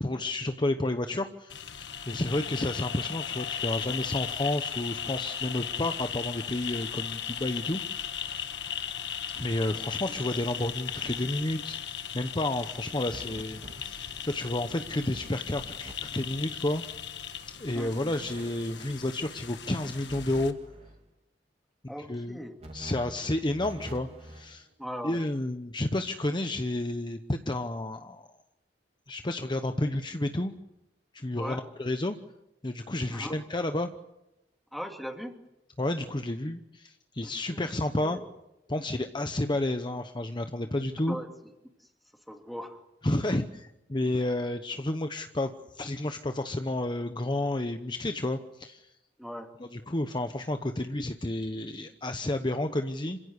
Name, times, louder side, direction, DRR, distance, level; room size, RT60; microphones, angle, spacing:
voice 1, 0.0-8.4 9.4-11.8 12.1-16.8 17.6-20.5 22.1-22.4 22.7-24.7 25.0-28.3 29.1-30.5 31.1-32.2 32.6-33.9 35.8-38.2 38.7-41.2 43.0-48.9 49.6-53.2, left 1 dB, 25° left, 7 dB, 0.9 m, -31 dB
sound 1, 1.5-20.5, left 8 dB, 75° left, 1.5 m, -37 dB
sound 2, 13.1-14.3 14.7-14.8 15.1-15.9 16.2-16.5 17.9-19.0 20.1-21.0 22.6-24.6, right 1 dB, 35° right, 3.5 m, -46 dB
voice 2, 21.9-22.6 24.8-25.2 31.4-31.6 33.1-33.4 34.7-35.4 37.2-38.2 41.1-41.3 42.3-42.8 49.2-49.5, equal, ahead, 3 dB, 2.5 m, -39 dB
27.0 x 16.5 x 9.6 m, 0.93 s
head